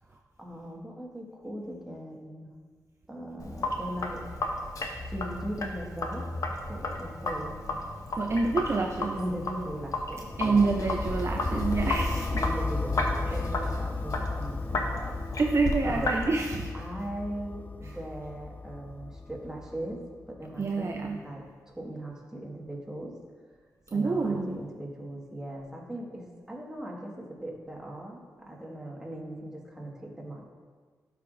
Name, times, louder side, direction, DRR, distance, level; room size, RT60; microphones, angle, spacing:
voice 1, 0.0-2.5 3.1-4.2 5.1-7.5 9.1-10.8 12.4-15.2 15.9-16.2 16.7-20.0 20.3-23.2 23.9-30.4, right 1 dB, 10° right, -2 dB, 1.7 m, -39 dB
Sink (filling or washing), 3.4-16.3, left 2 dB, 55° left, 0.9 m, -34 dB
voice 2, 8.2-9.2 10.4-12.5 15.4-16.7 20.6-21.2 23.9-24.6, right 3 dB, 45° right, 2 dB, 0.5 m, -27 dB
sound 1, 10.3-20.2, left 3 dB, 25° left, 0.4 m, -34 dB
11.5 x 4.9 x 2.6 m, 1.5 s
cardioid pair, 60°, 7 cm